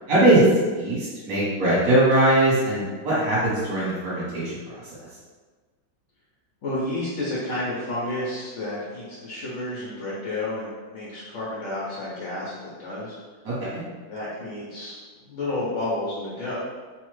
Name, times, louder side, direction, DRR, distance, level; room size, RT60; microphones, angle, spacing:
voice 1, 0.1-0.5 0.7-5.0 13.4-13.8, right 1 dB, 50° right, -8 dB, 1.2 m, -21 dB
voice 2, 6.6-13.2 14.1-16.5, left 1 dB, 70° left, -7 dB, 0.7 m, -31 dB
3.1 x 2.0 x 3.1 m, 1.4 s
omnidirectional pair, 2.0 m